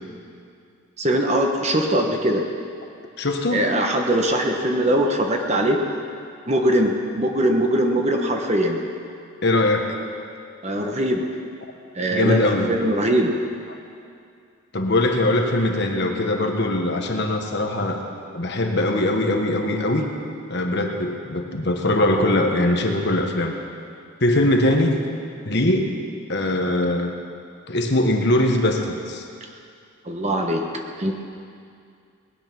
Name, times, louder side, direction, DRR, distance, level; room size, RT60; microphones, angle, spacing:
voice 1, 1.0-2.4 3.5-5.8 6.5-8.8 10.6-11.2 11.9-13.3 30.1-30.6 31.0-31.1, right 1 dB, 30° right, 2 dB, 1.1 m, -21 dB
voice 2, 3.2-3.7 9.4-9.9 12.1-12.8 14.7-18.0 18.3-20.0 20.5-23.5 24.2-25.0 25.4-25.9 26.3-27.1 27.7-29.2, left 1 dB, 50° left, 3 dB, 1.3 m, -21 dB
19.0 x 9.1 x 6.0 m, 2.4 s
head